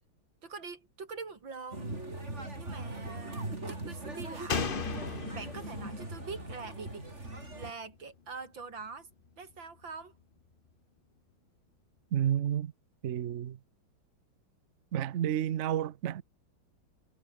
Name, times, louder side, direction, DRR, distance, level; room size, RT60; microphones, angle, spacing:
voice 1, 0.4-2.0 2.6-4.8 5.3-7.1 7.5-9.1 9.4-10.1, right 4 dB, 60° right, 4.2 m, -44 dB
sound 1, 1.7-7.7, right 2 dB, 30° right, 6.0 m, -40 dB
Slam, 4.5-8.0 8.3-8.4, left 6 dB, 35° left, 0.9 m, -38 dB
voice 2, 12.1-12.7 13.0-13.6 14.9-16.2, right 10 dB, 85° right, 0.6 m, -30 dB
omnidirectional pair, 2.4 m